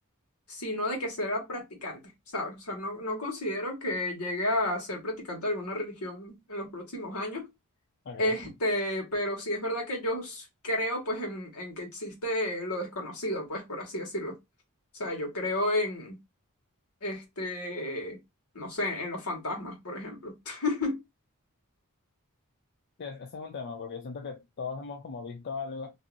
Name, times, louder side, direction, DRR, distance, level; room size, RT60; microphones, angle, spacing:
voice 1, 0.5-2.0 2.3-7.5 8.2-14.3 15.0-16.2 17.0-18.2 18.5-21.0, left 1 dB, 85° left, 1.5 m, -32 dB
voice 2, 8.1-8.4 23.0-25.9, left 5 dB, 50° left, 0.4 m, -38 dB
2.7 x 2.6 x 2.5 m
head